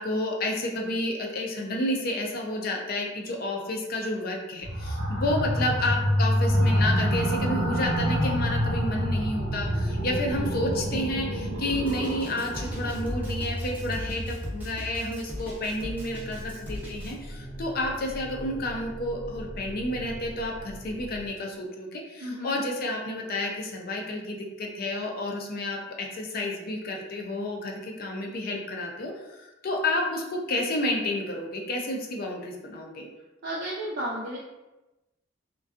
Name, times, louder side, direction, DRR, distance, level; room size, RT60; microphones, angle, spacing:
voice 1, 0.0-33.1, left 1 dB, 50° left, 1 dB, 0.4 m, -30 dB
sound 1, 4.6-15.2, equal, 90° right, 1.0 m, -27 dB
Drum kit, 11.7-17.1, left 1 dB, 10° right, 0.5 m, -39 dB
sound 2, 15.3-21.3, equal, 10° left, 0.9 m, -41 dB
voice 2, 22.2-22.6 33.4-34.4, right 1 dB, 60° right, -6 dB, 0.4 m, -33 dB
2.5 x 2.2 x 2.4 m, 1.0 s
head